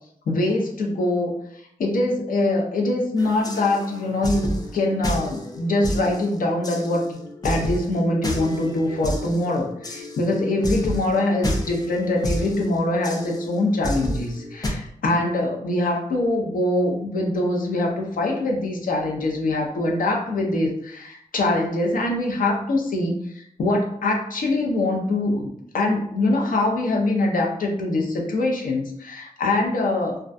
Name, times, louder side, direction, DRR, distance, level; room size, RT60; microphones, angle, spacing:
voice 1, 0.3-7.0 7.4-30.2, left 2 dB, 85° left, 0 dB, 0.6 m, -23 dB
sound 1, 3.2-14.7, equal, 30° left, 0.4 m, -31 dB
2.3 x 2.2 x 2.5 m, 0.70 s
wide cardioid pair, 120°, 14 cm